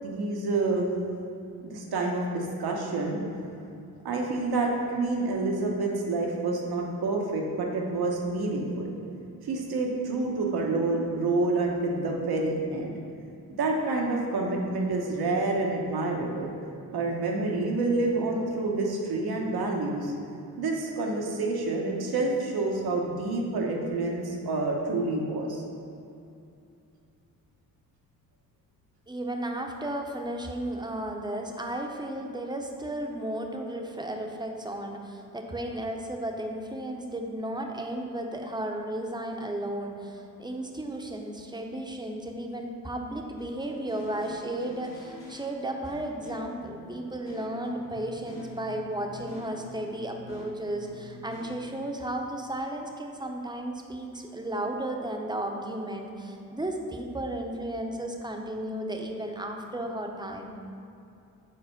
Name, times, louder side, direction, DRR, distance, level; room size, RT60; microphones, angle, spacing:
voice 1, 0.0-0.9 1.6-3.2 4.0-8.9 9.4-12.9 13.6-16.5 16.9-20.1 20.6-25.6, right 2 dB, 75° right, 0 dB, 1.1 m, -28 dB
voice 2, 29.1-60.6, right 1 dB, 10° right, 2 dB, 0.8 m, -34 dB
sound 1, 43.4-51.6, left 3 dB, 60° left, 1.2 m, -46 dB
4.9 x 4.2 x 5.7 m, 2.7 s
supercardioid pair, 50°, 38 cm